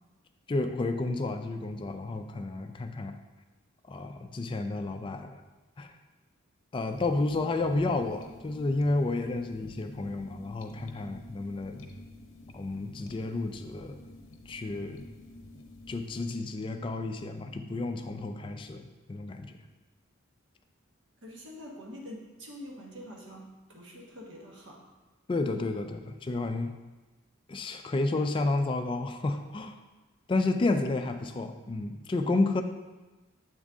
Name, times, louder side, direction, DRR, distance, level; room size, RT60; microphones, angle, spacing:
voice 1, 0.5-3.1 3.9-5.4 5.8-5.9 6.7-11.9 12.5-14.0 14.5-15.0 15.9-19.6 25.3-26.8 27.5-29.8 30.3-32.6, left 2 dB, 25° left, 5 dB, 0.3 m, -31 dB
sound 1, 6.9-16.4, left 1 dB, 70° left, 0.7 m, -49 dB
voice 2, 21.2-24.9, equal, 60° right, -2 dB, 1.1 m, -45 dB
7.2 x 3.6 x 3.7 m, 1.2 s
head